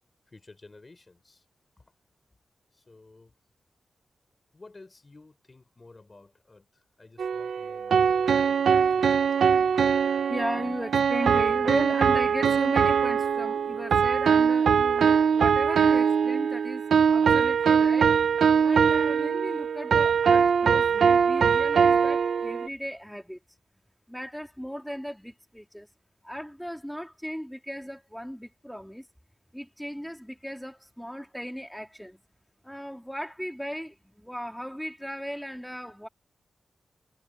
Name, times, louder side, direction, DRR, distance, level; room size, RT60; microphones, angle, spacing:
voice 1, 0.3-1.4 2.9-3.3 4.5-6.6 7.0-9.2, left 3 dB, 25° left, 5.1 m, -52 dB
sound 1, 7.2-22.7, right 6 dB, 85° right, 0.8 m, -22 dB
voice 2, 10.3-18.1 18.6-23.4 24.1-25.9 26.2-29.1 29.5-32.2 32.6-36.1, equal, ahead, 3.5 m, -36 dB
wide cardioid pair, 175°, 0 cm